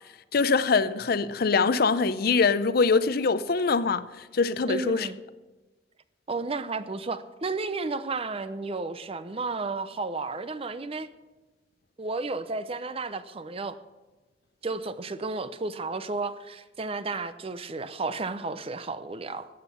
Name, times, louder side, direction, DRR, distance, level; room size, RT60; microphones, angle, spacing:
voice 1, 0.3-4.0 4.3-5.1, left 4 dB, 55° left, 0.5 m, -23 dB
voice 2, 4.7-5.2 6.3-11.1 12.0-13.8 14.6-19.5, right 3 dB, 30° right, 0.6 m, -32 dB
14.0 x 8.7 x 5.8 m
head